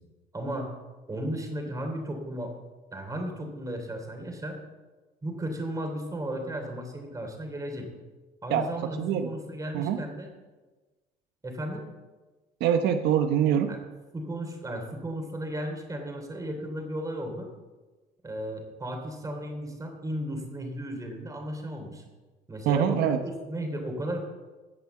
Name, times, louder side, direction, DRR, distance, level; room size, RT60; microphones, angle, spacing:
voice 1, 0.3-0.7 1.1-2.5 2.9-4.6 5.2-7.9 8.4-10.3 11.4-11.8 13.7-13.8 14.1-17.5 18.2-22.0 22.5-24.2, right 1 dB, 20° right, 3 dB, 3.0 m, -35 dB
voice 2, 9.0-9.3 9.7-10.0 12.6-13.7 22.7-23.2, right 9 dB, 85° right, 7 dB, 0.9 m, -24 dB
16.5 x 5.8 x 7.2 m, 1.2 s
cardioid pair, 110°, 17 cm